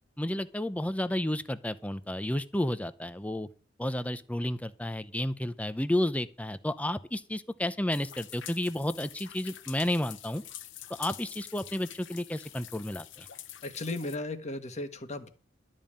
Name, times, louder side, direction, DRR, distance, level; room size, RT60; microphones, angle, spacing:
voice 1, 0.2-3.5 3.8-10.4 11.0-13.3, left 1 dB, 5° left, 13 dB, 0.6 m, -31 dB
sound 1, 7.9-14.2, left 11 dB, 75° left, 1.0 m, -46 dB
voice 2, 13.6-15.3, left 2 dB, 35° left, 8 dB, 1.4 m, -36 dB
12.5 x 5.4 x 8.7 m, 0.39 s
head